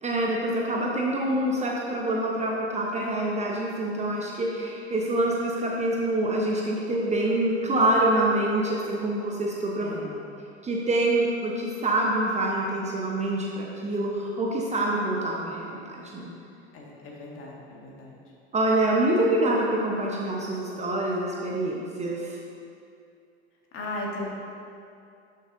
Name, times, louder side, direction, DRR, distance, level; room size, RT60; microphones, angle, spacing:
voice 1, 0.0-10.0 10.6-16.3 18.5-22.4, right 1 dB, 20° right, -3 dB, 1.0 m, -26 dB
voice 2, 9.8-10.2 16.7-18.2 23.7-24.3, left 2 dB, 35° left, -3 dB, 1.9 m, -37 dB
11.0 x 6.6 x 2.7 m, 2.5 s
hypercardioid pair, 90°, 35 cm